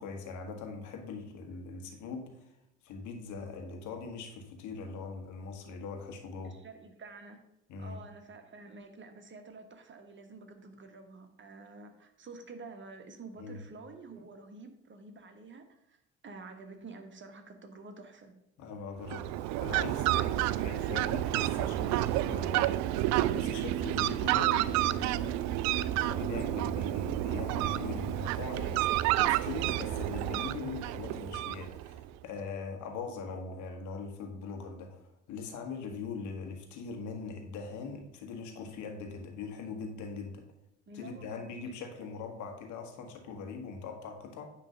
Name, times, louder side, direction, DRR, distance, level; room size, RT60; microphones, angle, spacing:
voice 1, 0.0-2.5 2.8-6.6 7.7-8.0 13.4-13.6 18.6-22.8 23.3-40.5 40.9-44.5, left 4 dB, 60° left, 4 dB, 1.5 m, -41 dB
voice 2, 6.4-7.5 7.8-18.3 20.0-22.0 40.9-42.1, right 3 dB, 35° right, 6 dB, 1.4 m, -49 dB
Fowl, 19.0-32.0, right 14 dB, 55° right, 0.4 m, -30 dB
9.7 x 3.3 x 6.7 m, 0.84 s
figure-of-eight pair, 50°, 33 cm